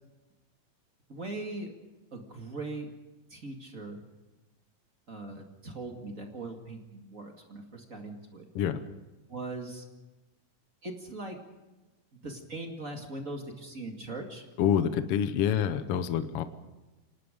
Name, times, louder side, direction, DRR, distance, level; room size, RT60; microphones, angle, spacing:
voice 1, 1.1-1.7 2.1-2.9 3.3-4.0 5.1-8.5 9.3-9.9 10.8-11.4 12.1-14.4 15.5-15.7, right 2 dB, 30° right, 3 dB, 2.1 m, -40 dB
voice 2, 14.6-16.4, left 9 dB, 70° left, 11 dB, 1.4 m, -27 dB
26.0 x 19.0 x 5.2 m, 1.1 s
omnidirectional pair, 3.8 m